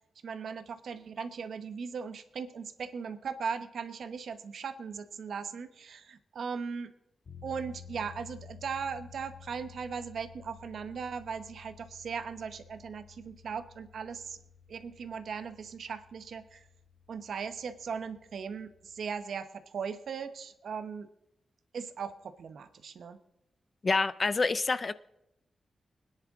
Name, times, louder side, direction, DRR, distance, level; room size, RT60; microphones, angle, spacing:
voice 1, 0.2-6.9 7.4-14.4 14.7-16.7 17.1-21.1 21.7-23.2, right 6 dB, 75° right, 1.0 m, -38 dB
sound 1, 7.2-19.1, left 7 dB, 55° left, 2.2 m, -53 dB
voice 2, 23.8-24.9, left 3 dB, 30° left, 0.4 m, -27 dB
24.5 x 10.0 x 3.6 m
wide cardioid pair, 165°, 0 cm